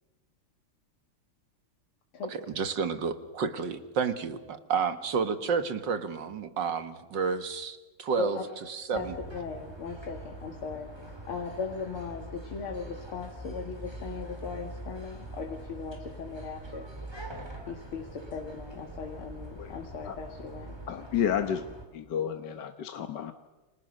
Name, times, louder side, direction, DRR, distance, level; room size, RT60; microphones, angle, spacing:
voice 1, 2.3-8.4 8.7-9.1, right 6 dB, 60° right, 10 dB, 2.2 m, -30 dB
voice 2, 8.2-8.5 8.9-16.9 17.7-20.8, left 5 dB, 85° left, 3 dB, 3.0 m, -38 dB
sound 1, 8.9-21.8, right 1 dB, 10° right, 3.5 m, -43 dB
voice 3, 20.9-21.7 21.9-23.3, left 9 dB, 60° left, 8 dB, 1.6 m, -31 dB
29.5 x 26.0 x 6.6 m, 1.2 s
omnidirectional pair, 2.3 m